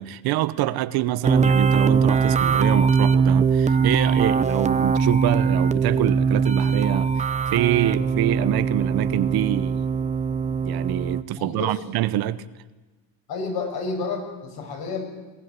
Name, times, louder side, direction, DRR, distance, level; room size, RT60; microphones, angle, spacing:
voice 1, 0.0-9.8 10.6-12.4, right 14 dB, 50° right, 0.9 m, -25 dB
sound 1, 1.2-11.2, right 5 dB, 15° right, 0.8 m, -21 dB
voice 2, 11.4-11.7 13.3-15.0, left 4 dB, 50° left, 6.2 m, -30 dB
21.5 x 16.5 x 9.5 m
cardioid pair, 130°, 46 cm